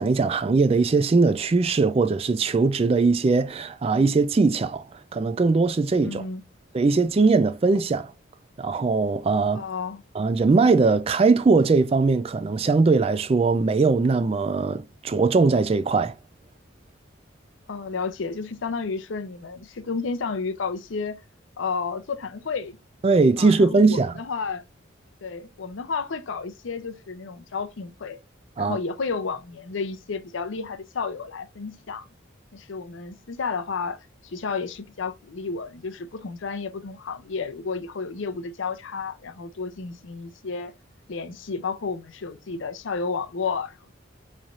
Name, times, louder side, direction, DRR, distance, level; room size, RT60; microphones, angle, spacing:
voice 1, 0.0-6.2 6.7-8.1 8.6-9.6 10.1-16.2 23.0-24.1 28.6-28.8, right 4 dB, 30° right, 0.3 m, -20 dB
voice 2, 6.0-6.4 9.5-10.0 17.7-21.2 21.6-22.8 23.4-24.6 25.2-28.2 28.6-32.1 32.5-40.7 41.1-43.8, left 4 dB, 75° left, 0.6 m, -31 dB
4.1 x 3.2 x 2.4 m
head